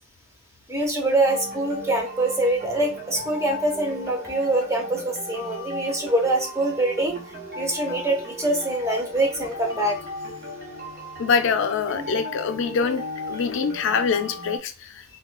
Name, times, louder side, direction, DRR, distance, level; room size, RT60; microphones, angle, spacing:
voice 1, 0.7-7.2 7.6-10.0 11.9-12.1, right 2 dB, 15° right, 0 dB, 0.8 m, -24 dB
sound 1, 1.2-14.6, left 2 dB, 50° right, 0.9 m, -36 dB
voice 2, 11.2-13.0 13.3-15.0, left 5 dB, 70° left, 9 dB, 0.4 m, -24 dB
3.6 x 2.2 x 2.3 m, 0.32 s
head